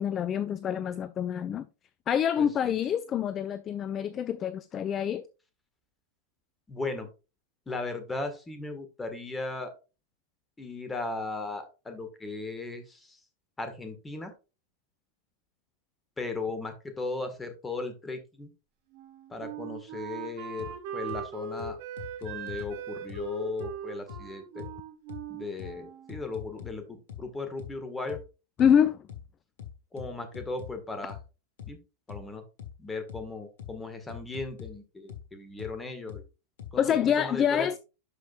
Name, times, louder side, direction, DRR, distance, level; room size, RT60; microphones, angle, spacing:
voice 1, 0.0-1.7 2.1-5.3 28.6-29.0 36.8-37.7, left 8 dB, 25° left, 0.4 m, -26 dB
voice 2, 2.4-2.7 6.7-7.1 7.7-9.7 10.6-13.2 13.6-14.3 16.2-18.5 19.3-21.8 22.2-24.7 25.3-28.2 29.9-31.2 31.7-31.8 32.1-32.4 32.8-36.2 36.7-37.7, left 3 dB, 10° left, 1.7 m, -37 dB
Wind instrument woodwind instrument, 18.9-26.4, right 6 dB, 50° right, 2.0 m, -40 dB
sound 1, 20.6-20.7 21.1-21.2 21.6-22.7 23.1-23.2 23.6-23.7 24.1-24.2 24.6-24.7 25.1-25.2 25.6-25.7 26.1-26.7 27.1-27.2 27.6-27.7 28.1-28.2 28.6-28.7 29.1-29.2 29.6-30.7 31.1-31.2 31.6-31.7 32.1-32.2 32.6-32.7 33.1-33.2 33.6-33.7 34.1-34.7 35.1-35.2 35.6-35.7 36.1-36.2 36.6-36.7, left 10 dB, 60° left, 1.4 m, -42 dB
11.5 x 5.2 x 2.5 m
figure-of-eight pair, 90°, 0 cm